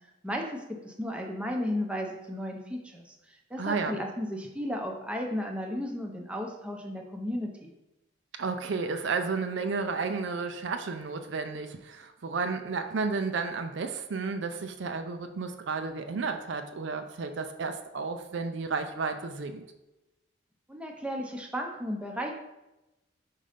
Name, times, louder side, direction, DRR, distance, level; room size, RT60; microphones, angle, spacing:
voice 1, 0.2-7.7 20.7-22.3, equal, 5° right, 1 dB, 0.7 m, -34 dB
voice 2, 3.6-4.0 8.4-19.6, right 4 dB, 60° right, 7 dB, 0.4 m, -32 dB
5.4 x 3.8 x 5.0 m, 0.97 s
head